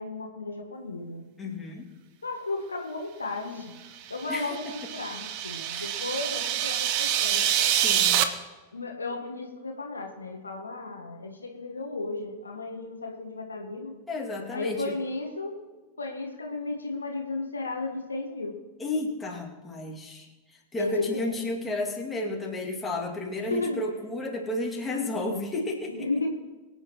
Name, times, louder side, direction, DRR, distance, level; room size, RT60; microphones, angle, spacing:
voice 1, 0.0-1.2 2.2-3.7 4.1-7.5 8.7-14.0 14.5-15.6 16.0-18.6 20.8-21.3 23.5-23.8 25.9-26.3, left 3 dB, 75° left, 2 dB, 1.4 m, -34 dB
voice 2, 1.4-1.9 4.3-4.9 5.7-6.0 7.7-8.3 14.1-15.0 18.8-26.1, left 2 dB, 15° left, -2 dB, 2.4 m, -33 dB
sound 1, 4.1-8.2, right 11 dB, 45° right, 1.0 m, -26 dB
23.5 x 8.7 x 3.1 m, 1.2 s
figure-of-eight pair, 90°, 0 cm